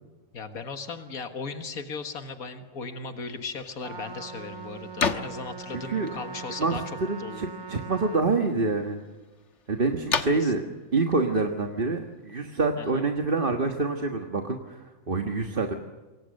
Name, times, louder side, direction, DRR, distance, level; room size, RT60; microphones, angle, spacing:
voice 1, 0.3-6.8 7.2-7.4 10.3-10.5 12.8-13.1, left 4 dB, 85° left, 7 dB, 2.1 m, -37 dB
sound 1, 3.3-12.5, left 5 dB, 55° left, 1.6 m, -37 dB
Trumpet, 3.8-8.3, right 5 dB, 85° right, 2.9 m, -41 dB
voice 2, 5.7-6.1 6.6-9.0 9.7-10.6 10.9-15.8, right 3 dB, 40° right, 4 dB, 1.7 m, -27 dB
27.5 x 23.5 x 6.5 m, 1.2 s
omnidirectional pair, 1.5 m